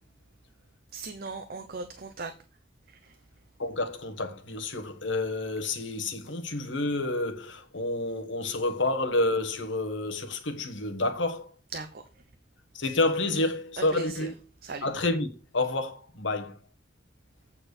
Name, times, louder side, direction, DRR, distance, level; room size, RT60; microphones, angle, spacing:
voice 1, 0.9-2.3 2.9-3.2 11.7-12.2 13.8-14.3 14.6-14.9, right 4 dB, 50° right, 0.8 m, -38 dB
voice 2, 3.6-11.5 12.7-14.3 14.8-15.3 15.5-16.5, left 2 dB, 70° left, 1.4 m, -29 dB
8.5 x 4.4 x 6.6 m
head